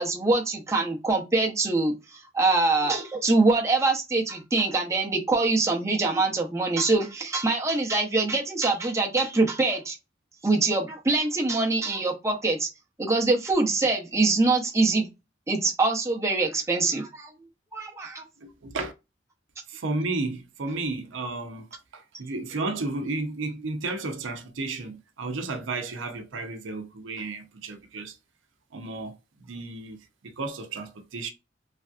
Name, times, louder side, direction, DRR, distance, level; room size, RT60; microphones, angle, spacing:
voice 1, 0.0-10.0 10.4-12.7 13.0-15.1 15.5-17.3 17.7-18.2, right 3 dB, 15° right, 0.6 m, -24 dB
voice 2, 18.4-18.9 19.7-21.7 21.9-28.2 28.7-31.3, right 3 dB, 90° right, 0.6 m, -33 dB
3.3 x 2.6 x 2.3 m
head